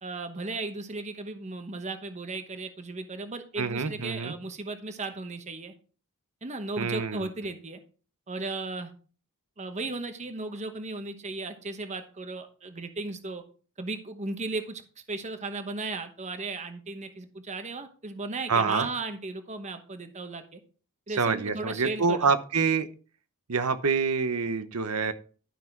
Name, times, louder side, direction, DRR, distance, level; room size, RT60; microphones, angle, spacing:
voice 1, 0.0-5.7 6.4-7.8 8.3-8.9 9.6-13.4 13.8-20.6 21.1-22.3, right 3 dB, 30° right, 8 dB, 1.0 m, -36 dB
voice 2, 3.6-4.3 6.8-7.2 18.5-18.9 21.2-22.9 23.5-25.1, right 5 dB, 90° right, 12 dB, 0.9 m, -26 dB
12.0 x 5.9 x 4.5 m, 0.39 s
head